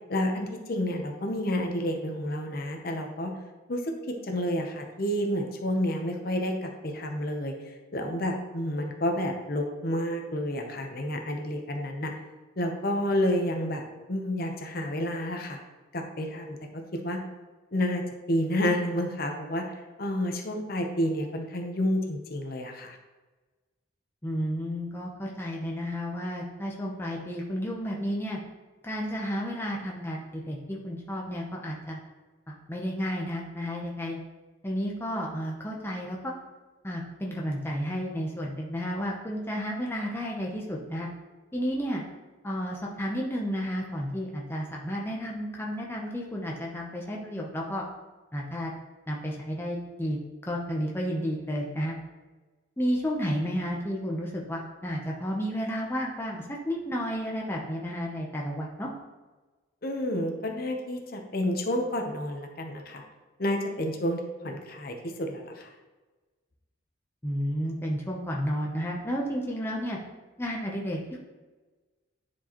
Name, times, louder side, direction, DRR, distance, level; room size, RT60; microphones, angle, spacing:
voice 1, 0.1-3.3 3.7-7.5 7.9-12.1 12.6-15.6 15.9-16.6 17.0-17.2 17.7-19.6 20.0-23.0 59.8-63.0 63.4-65.7, left 1 dB, 50° left, 3 dB, 0.8 m, -30 dB
voice 2, 24.2-28.4 28.8-32.0 32.5-34.2 34.6-36.3 36.8-41.1 41.5-42.0 42.4-47.8 48.3-48.7 49.1-52.0 52.8-58.9 67.2-70.0 70.4-71.2, equal, 10° left, -2 dB, 0.7 m, -32 dB
9.7 x 4.5 x 3.0 m, 1.2 s
head